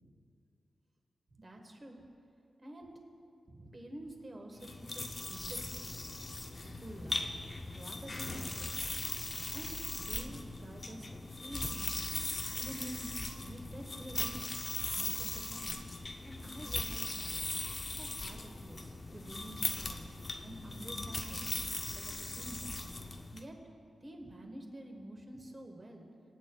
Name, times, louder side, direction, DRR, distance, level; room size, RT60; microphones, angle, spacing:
voice 1, 1.4-2.0 2.6-2.9 3.5-6.1 6.6-8.8 9.5-11.1 11.4-12.1 12.5-13.1 13.4-14.6 14.9-17.5 17.8-20.1 20.4-21.5 21.9-22.9 23.3-23.5 24.0-26.1, right 1 dB, 30° right, 2 dB, 1.3 m, -48 dB
sound 1, 4.6-23.4, left 2 dB, 30° left, 0.5 m, -39 dB
25.0 x 8.7 x 2.3 m, 2.5 s
wide cardioid pair, 130°, 0 cm